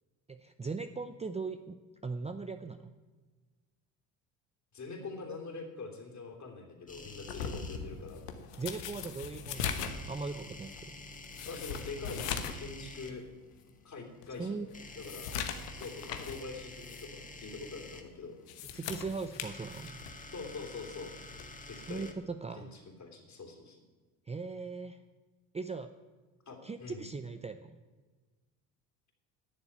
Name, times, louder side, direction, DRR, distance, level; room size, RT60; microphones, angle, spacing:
voice 1, 0.3-2.9 8.6-10.9 14.4-14.7 18.6-20.0 21.9-22.8 24.3-25.0 25.5-25.9 26.6-27.7, right 4 dB, 15° right, 9 dB, 0.6 m, -39 dB
voice 2, 4.7-8.2 11.5-13.2 13.8-15.3 15.7-18.3 20.3-21.1 21.7-22.1 22.6-22.7 23.0-23.8 26.5-27.0, left 3 dB, 40° left, 3 dB, 3.2 m, -44 dB
sound 1, 6.9-7.8 9.5-13.1 14.7-18.0 19.2-22.1, left 2 dB, 15° left, 1.9 m, -49 dB
sound 2, 7.3-12.7 13.0-13.1 13.7-13.8 14.2-16.5 16.8-17.0 18.3-20.2 21.3-21.6, left 7 dB, 90° left, 1.2 m, -40 dB
11.0 x 7.0 x 9.5 m, 1.3 s
hypercardioid pair, 70°, 45 cm